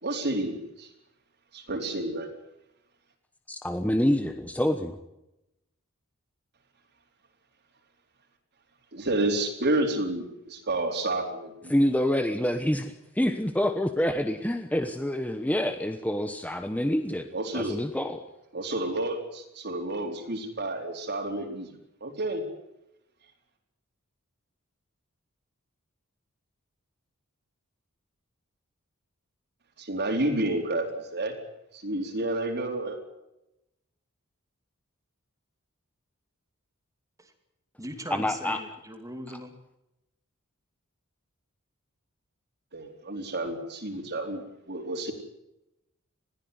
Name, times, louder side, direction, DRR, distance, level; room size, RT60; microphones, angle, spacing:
voice 1, 0.0-0.9 1.5-2.3 8.9-11.7 17.3-17.8 18.5-21.7 22.0-22.4 29.8-31.3 31.7-33.0 42.7-45.1, right 2 dB, 50° right, 2 dB, 4.2 m, -30 dB
voice 2, 3.5-5.0 11.7-17.3 17.5-18.2 38.1-38.6, left 1 dB, 5° left, 7 dB, 1.1 m, -27 dB
voice 3, 37.8-39.5, equal, 15° right, 6 dB, 2.5 m, -39 dB
21.0 x 15.0 x 9.6 m, 0.90 s
head